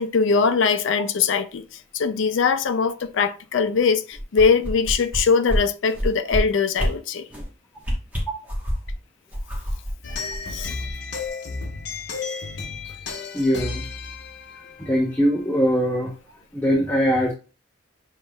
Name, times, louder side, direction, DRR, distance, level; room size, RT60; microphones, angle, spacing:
voice 1, 0.0-7.3 10.5-10.7, left 5 dB, 75° left, 0.4 m, -21 dB
sound 1, 4.1-5.2 5.5-5.6 5.9-6.4 6.7-6.9 7.3-7.5 7.8-8.9 9.3-10.9 11.2-11.3, equal, 10° right, 1.1 m, -27 dB
sound 2, 10.0-15.8, left 4 dB, 60° left, 0.8 m, -33 dB
voice 2, 13.3-13.8 14.8-16.1 16.5-17.3, equal, 10° left, 0.6 m, -21 dB
6.4 x 3.1 x 2.3 m
head